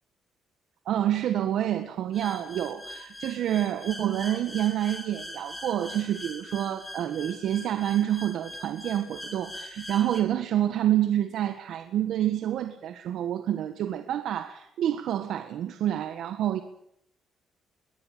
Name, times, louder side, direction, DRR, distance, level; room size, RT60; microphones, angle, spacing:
voice 1, 0.8-16.6, right 11 dB, 75° right, 9 dB, 1.6 m, -28 dB
sound 1, 2.1-10.2, left 1 dB, 10° left, 6.2 m, -42 dB
22.5 x 18.5 x 9.0 m, 0.73 s
cardioid pair, 90°, 0 cm